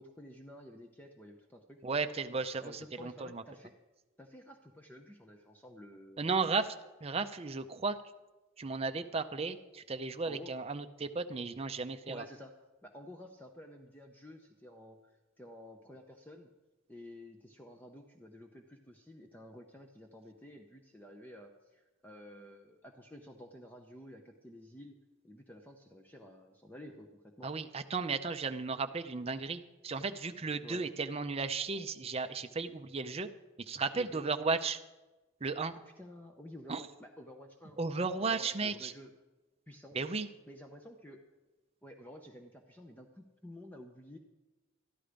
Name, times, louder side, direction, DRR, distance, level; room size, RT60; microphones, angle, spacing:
voice 1, 0.0-1.8 2.6-3.7 4.2-6.3 10.2-10.6 12.1-12.6 12.8-16.5 16.9-25.0 25.2-27.5 30.6-30.9 33.9-34.3 35.7-39.1 39.7-40.0 40.5-41.2 41.8-44.2, left 1 dB, 10° left, 3 dB, 0.7 m, -51 dB
voice 2, 1.8-3.4 6.2-6.7 7.0-8.0 8.6-12.2 27.4-33.3 33.7-34.8 35.4-35.7 36.7-36.8 37.8-38.9 39.9-40.3, right 4 dB, 30° right, 8 dB, 0.5 m, -34 dB
13.0 x 11.0 x 5.1 m, 1.1 s
head